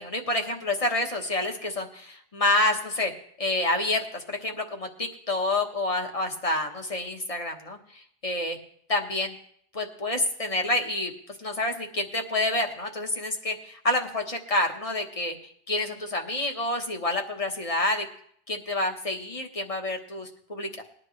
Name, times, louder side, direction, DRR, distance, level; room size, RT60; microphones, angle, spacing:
voice 1, 0.0-3.1 3.4-8.6 8.9-9.3 9.7-11.1 11.4-18.1 18.5-20.8, left 2 dB, 35° left, 4 dB, 1.4 m, -28 dB
20.0 x 10.5 x 3.2 m, 0.66 s
omnidirectional pair, 1.1 m